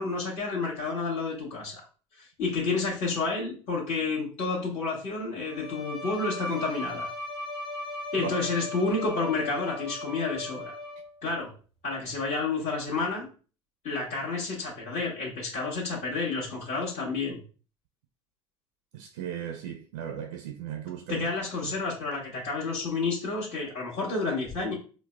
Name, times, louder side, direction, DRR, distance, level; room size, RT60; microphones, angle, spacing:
voice 1, 0.0-1.8 2.2-7.1 8.1-10.7 11.2-11.5 11.8-13.3 13.8-17.4 21.1-24.7, left 3 dB, 50° left, 1.2 m, -30 dB
Bowed string instrument, 5.5-11.3, left 2 dB, 80° left, 1.3 m, -37 dB
voice 2, 18.9-21.3 21.6-21.7, right 9 dB, 75° right, 0.4 m, -37 dB
3.9 x 2.1 x 2.3 m
hypercardioid pair, 65°, 16 cm